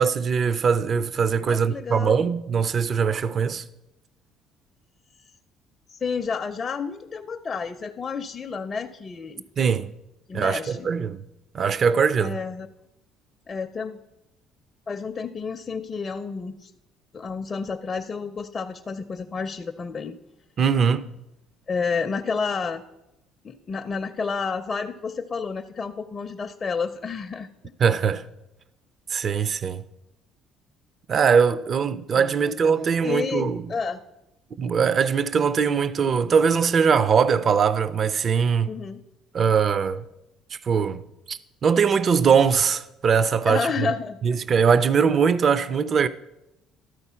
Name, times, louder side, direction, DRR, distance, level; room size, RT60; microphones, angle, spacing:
voice 1, 0.0-3.6 9.6-9.9 10.3-11.2 11.5-12.4 20.6-21.1 27.8-28.2 29.1-29.8 31.1-33.7 34.6-38.7 39.3-40.0 40.5-41.0 41.3-43.9 44.2-46.1, right 6 dB, 40° right, 0.4 m, -21 dB
voice 2, 1.5-2.3 5.9-9.4 10.3-10.9 12.2-12.7 13.5-14.0 14.9-16.7 17.1-20.2 21.7-22.8 23.4-27.5 32.1-32.6 33.0-34.0 38.7-39.0 43.5-44.4, left 5 dB, 30° left, 0.4 m, -30 dB
12.5 x 4.3 x 5.6 m
cardioid pair, 115°, 0 cm